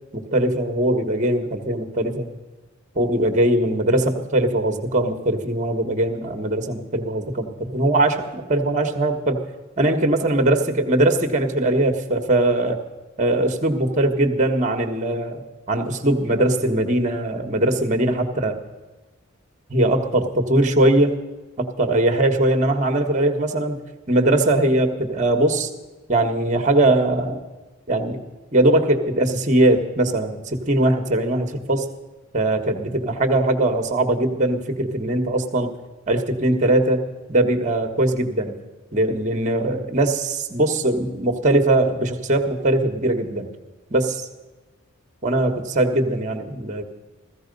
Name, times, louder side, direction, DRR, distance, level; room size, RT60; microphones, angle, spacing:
voice 1, 0.1-2.3 2.9-9.4 9.8-12.8 13.2-18.6 19.7-21.2 21.6-23.8 24.1-25.7 26.1-27.4 27.9-28.2 28.5-31.9 32.3-35.7 36.1-37.0 37.3-38.5 38.9-43.5 43.9-44.3 45.2-46.8, right 1 dB, 35° right, 6 dB, 1.4 m, -20 dB
15.0 x 15.0 x 5.3 m, 1.2 s
head